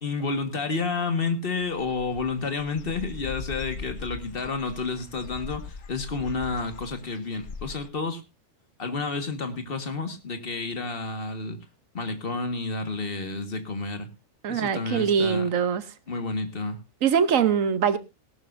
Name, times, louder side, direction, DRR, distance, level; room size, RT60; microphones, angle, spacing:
voice 1, 0.0-8.2 8.8-11.6 11.9-14.1 14.5-15.5 16.1-16.8, left 3 dB, 45° left, 1.8 m, -30 dB
Dog / Bird, 1.6-7.9, left 4 dB, 80° left, 1.5 m, -41 dB
voice 2, 14.4-15.8 17.0-18.0, right 7 dB, 75° right, 1.3 m, -23 dB
18.0 x 12.0 x 2.6 m
omnidirectional pair, 1.4 m